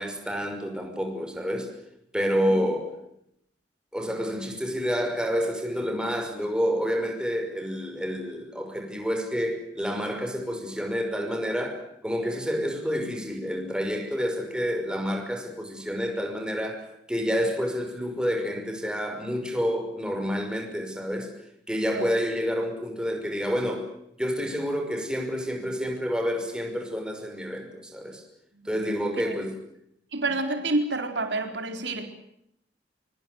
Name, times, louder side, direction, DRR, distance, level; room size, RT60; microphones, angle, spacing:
voice 1, 0.0-1.7 2.1-2.9 3.9-21.3 21.7-23.8 24.2-28.2 28.6-29.5, equal, 5° right, 4 dB, 5.7 m, -29 dB
voice 2, 28.8-29.3 30.1-32.1, right 2 dB, 75° right, 6 dB, 4.2 m, -29 dB
24.5 x 24.0 x 8.0 m, 0.76 s
head